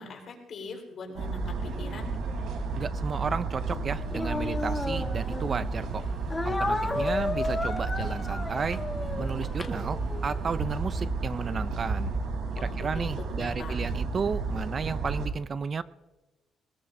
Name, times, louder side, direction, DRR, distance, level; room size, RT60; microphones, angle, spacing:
voice 1, 0.0-2.2 12.6-13.1 13.4-13.8, left 4 dB, 50° left, 1 dB, 4.1 m, -42 dB
sound 1, 1.1-15.3, right 3 dB, 75° right, 3.3 m, -32 dB
voice 2, 2.8-6.0 6.4-8.8 9.2-12.1 12.6-15.8, right 5 dB, 35° right, 14 dB, 0.4 m, -33 dB
Speech, 4.1-5.7 6.3-10.3, left 2 dB, 15° left, 1.3 m, -32 dB
21.5 x 20.0 x 2.6 m, 1.1 s
cardioid pair, 135°, 0 cm